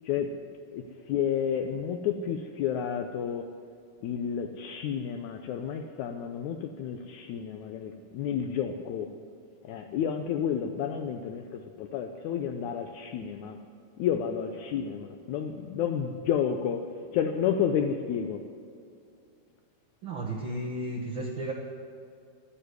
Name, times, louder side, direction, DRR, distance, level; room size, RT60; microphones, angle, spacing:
voice 1, 0.0-3.5 4.0-9.2 9.6-13.6 14.0-18.5, left 8 dB, 80° left, 5 dB, 1.7 m, -31 dB
voice 2, 20.0-21.5, right 1 dB, 70° right, -1 dB, 1.2 m, -33 dB
13.5 x 9.9 x 9.5 m, 2.5 s
omnidirectional pair, 4.2 m